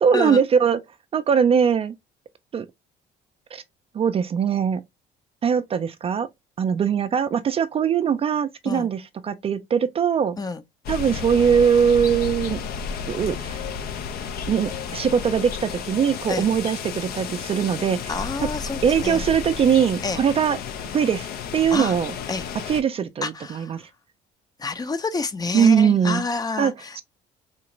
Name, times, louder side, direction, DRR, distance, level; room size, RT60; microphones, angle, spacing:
voice 1, 0.0-0.8 1.1-1.9 2.5-2.7 3.5-3.6 3.9-4.8 5.4-6.3 6.6-10.4 10.9-12.6 13.1-13.6 14.5-18.0 18.8-20.6 20.9-22.1 22.7-23.9 25.5-26.2 26.6-27.0, right 7 dB, 35° right, 0.4 m, -21 dB
sound 1, 10.8-22.8, left 6 dB, 65° left, 0.6 m, -32 dB
voice 2, 18.1-19.2 20.0-20.2 21.7-22.0 22.3-22.5 23.2-23.7 24.6-27.0, left 4 dB, 25° left, 0.6 m, -28 dB
3.8 x 2.4 x 3.0 m
cardioid pair, 110°, 17 cm